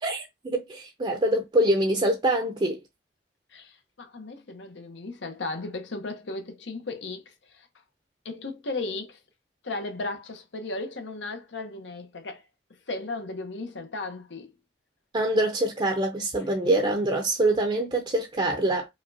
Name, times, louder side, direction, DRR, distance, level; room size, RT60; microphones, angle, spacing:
voice 1, 0.0-2.8 15.1-18.9, right 1 dB, 30° right, 0.6 m, -25 dB
voice 2, 3.5-7.2 7.5-7.7 8.2-9.2 9.6-12.4 12.9-14.5, left 3 dB, 80° left, 0.9 m, -35 dB
5.1 x 2.3 x 2.6 m
head